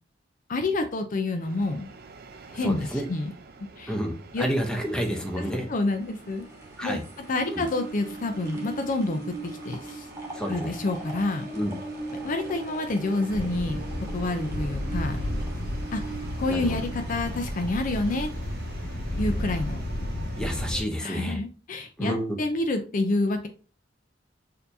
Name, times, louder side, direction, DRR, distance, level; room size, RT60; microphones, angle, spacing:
voice 1, 0.5-1.9 2.5-3.3 3.8-3.9 4.3-4.5 5.7-6.5 6.8-7.0 7.3-10.1 10.5-11.5 12.2-13.8 14.1-15.2 15.9-16.0 16.4-18.3 19.2-19.8 21.0-23.5, left 2 dB, 45° left, 6 dB, 0.5 m, -28 dB
Train, 1.4-20.9, right 3 dB, 55° right, 0.6 m, -42 dB
voice 2, 2.6-3.1 3.9-5.7 6.8-7.0 7.5-7.6 10.3-10.8 11.5-11.7 16.5-16.8 20.3-21.4 22.0-22.4, equal, 5° left, 2 dB, 0.7 m, -29 dB
sound 1, 6.0-19.2 19.6-19.7, right 1 dB, 15° right, 1.2 m, -47 dB
sound 2, 13.3-20.8, left 1 dB, 70° left, 1.7 m, -32 dB
6.5 x 2.7 x 2.7 m, 0.37 s
head